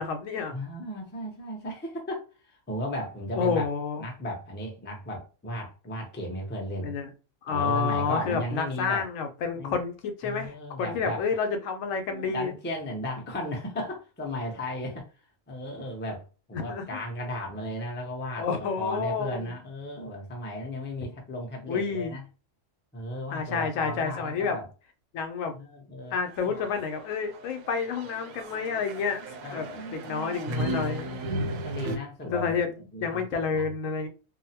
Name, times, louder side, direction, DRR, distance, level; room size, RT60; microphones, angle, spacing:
voice 1, 0.0-0.5 3.3-4.0 6.8-7.1 7.4-12.5 16.5-17.0 18.4-19.5 21.7-22.1 23.3-24.6 25.1-25.5 26.1-31.2 32.2-32.7 33.0-34.1, left 5 dB, 75° left, 0.9 m, -29 dB
voice 2, 0.5-3.7 4.0-6.9 7.5-9.1 9.6-9.8 10.2-11.3 12.1-15.1 15.5-16.2 16.5-22.2 22.9-24.7 25.5-26.2 26.4-26.8 29.4-30.4 30.7-32.6 32.9-33.6, left 1 dB, 15° left, 0.4 m, -35 dB
sound 1, 26.3-32.0, right 1 dB, 80° right, 1.0 m, -35 dB
2.7 x 2.0 x 2.8 m
omnidirectional pair, 1.4 m